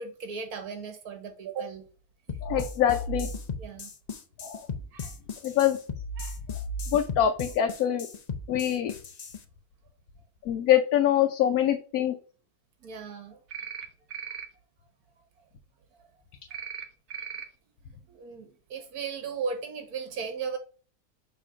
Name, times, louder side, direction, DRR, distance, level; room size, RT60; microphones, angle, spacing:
voice 1, 0.0-1.9 2.3-2.4 3.6-3.9 4.9-5.1 6.2-6.4 12.8-13.4 18.1-20.6, right 5 dB, 75° right, 6 dB, 1.7 m, -36 dB
sound 1, 2.3-9.4, left 2 dB, 60° left, 0.4 m, -35 dB
voice 2, 2.4-3.3 4.4-4.7 5.4-5.8 6.9-8.1 8.5-8.9 10.4-12.2, left 10 dB, 80° left, 5 dB, 1.1 m, -24 dB
sound 2, 13.5-13.9 14.1-14.5 16.5-16.8 17.1-17.4, right 7 dB, 55° right, 1.1 m, -37 dB
6.8 x 3.0 x 4.9 m, 0.39 s
omnidirectional pair, 1.6 m